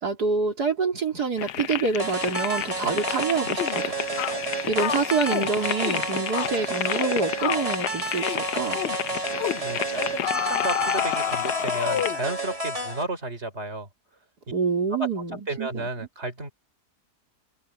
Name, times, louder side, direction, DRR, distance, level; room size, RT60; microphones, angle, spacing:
voice 1, 0.0-4.0 4.6-8.8 14.5-15.9, right 4 dB, 85° right, 3.9 m, -26 dB
sound 1, 1.4-12.1, left 11 dB, 90° left, 1.4 m, -32 dB
sound 2, 2.0-13.0, right 2 dB, 20° right, 2.4 m, -31 dB
sound 3, 3.6-3.8 4.2-4.4 4.8-5.5 5.8-6.0 6.3-6.5 6.8-7.1 7.4-7.7 8.1-8.4 8.7-9.0 9.4-9.6 10.2-12.3, left 10 dB, 60° left, 0.7 m, -29 dB
voice 2, 9.6-13.9 15.0-16.5, right 2 dB, 40° right, 5.0 m, -32 dB
omnidirectional pair, 1.7 m